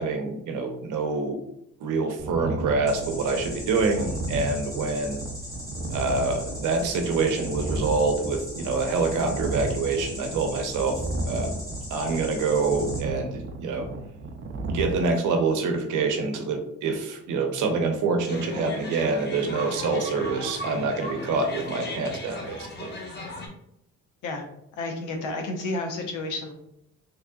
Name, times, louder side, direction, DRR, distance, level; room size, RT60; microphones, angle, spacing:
voice 1, 0.0-1.4 1.8-5.2 5.9-11.0 11.3-11.5 11.9-13.9 14.7-23.0, right 4 dB, 80° right, 5 dB, 0.7 m, -26 dB
sound 1, 2.2-14.9, right 2 dB, 40° right, 0.5 m, -34 dB
sound 2, 2.9-13.0, left 1 dB, 10° left, 1.1 m, -39 dB
sound 3, 18.3-23.5, left 1 dB, 35° left, 0.9 m, -37 dB
voice 2, 24.8-26.5, left 2 dB, 85° left, 3 dB, 0.8 m, -31 dB
3.5 x 3.2 x 2.2 m, 0.80 s
cardioid pair, 90°, 30 cm